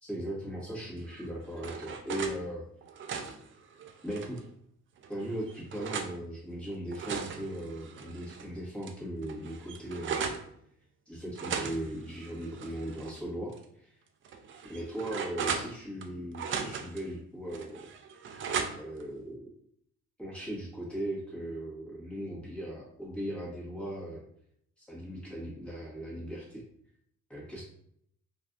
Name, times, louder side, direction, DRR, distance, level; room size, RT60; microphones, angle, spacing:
voice 1, 0.0-2.6 4.0-4.4 5.1-10.3 11.1-14.0 14.7-17.9 18.7-19.4 20.2-24.2 24.8-26.6 27.3-27.6, right 1 dB, 5° left, -6 dB, 1.5 m, -38 dB
sound 1, 1.1-2.4 2.8-4.5 5.0-6.1 6.7-8.5 8.8-8.9 9.2-10.5 11.3-13.2 13.5-13.6 14.2-16.1 16.3-17.0 17.5-19.0, right 6 dB, 40° right, 0.4 m, -37 dB
3.1 x 2.6 x 2.4 m, 0.69 s
cardioid pair, 90°, 30 cm